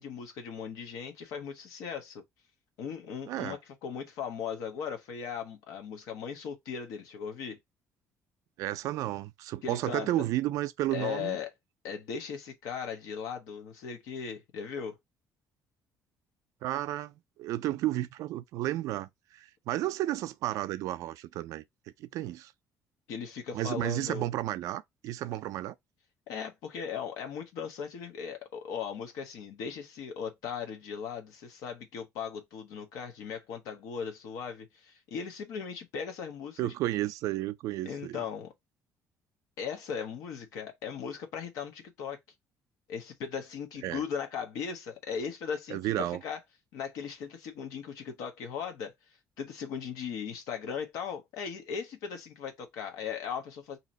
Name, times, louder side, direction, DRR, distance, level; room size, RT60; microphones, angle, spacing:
voice 1, 0.0-2.2 2.8-7.6 9.6-10.1 10.9-11.5 11.8-15.0 23.1-24.3 26.3-36.7 37.9-38.5 39.6-42.2 42.9-46.4 46.7-48.9 49.4-53.8, left 7 dB, 85° left, 0.8 m, -38 dB
voice 2, 3.3-3.6 8.6-11.4 16.6-21.6 22.0-22.5 23.5-25.7 36.6-38.2 43.8-44.0 45.7-46.2, right 14 dB, 75° right, 0.4 m, -32 dB
2.8 x 2.6 x 4.1 m
cardioid pair, 135°, 6 cm